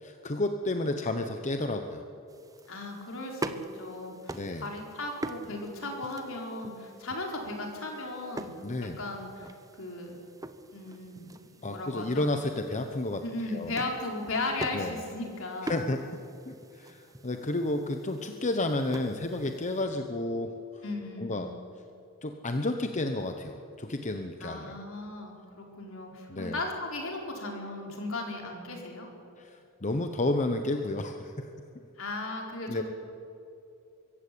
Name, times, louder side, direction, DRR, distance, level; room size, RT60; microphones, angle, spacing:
voice 1, 0.0-2.0 4.3-4.7 8.6-9.0 11.6-13.2 13.5-13.7 14.7-14.9 15.6-16.0 16.5-20.5 21.2-21.5 22.2-24.8 26.3-26.6 29.4-31.5 32.7-32.8, left 2 dB, 35° left, 6 dB, 1.0 m, -31 dB
sound 1, 2.3-19.9, right 1 dB, 15° right, 0.9 m, -44 dB
voice 2, 2.7-8.5 9.0-9.5 9.8-10.2 10.7-12.3 13.2-15.9 20.8-21.5 24.4-29.1 32.0-32.8, left 2 dB, 65° left, 1 dB, 4.5 m, -36 dB
23.5 x 15.0 x 8.6 m, 2.7 s
head